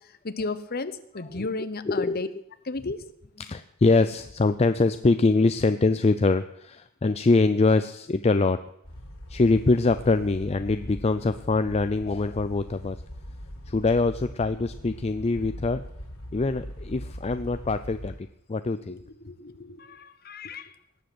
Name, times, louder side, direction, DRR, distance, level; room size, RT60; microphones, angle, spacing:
voice 1, 0.2-2.3 2.6-3.0 19.1-20.7, left 3 dB, 45° left, 12 dB, 1.0 m, -34 dB
voice 2, 1.9-2.3 3.4-8.6 9.3-13.0 13.7-15.8 16.3-19.0, left 3 dB, 30° left, 10 dB, 0.4 m, -24 dB
sound 1, 8.8-18.2, equal, 70° left, 3.6 m, -41 dB
18.5 x 7.8 x 7.9 m, 0.76 s
head